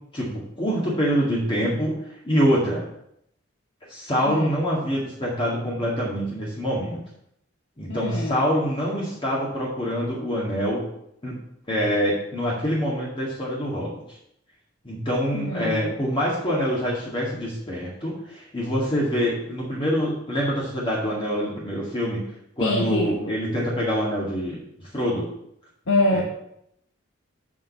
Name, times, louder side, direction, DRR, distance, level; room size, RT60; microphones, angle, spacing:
voice 1, 0.1-2.0 2.2-2.8 3.9-7.0 7.8-10.8 11.2-11.3 11.7-14.0 14.8-22.2 22.6-25.3 26.1-26.2, equal, 25° left, -5 dB, 2.0 m, -25 dB
voice 2, 7.9-8.4 15.3-15.9 22.6-23.3 25.9-26.2, left 1 dB, 75° left, -1 dB, 1.1 m, -24 dB
7.2 x 5.2 x 7.1 m, 0.75 s
head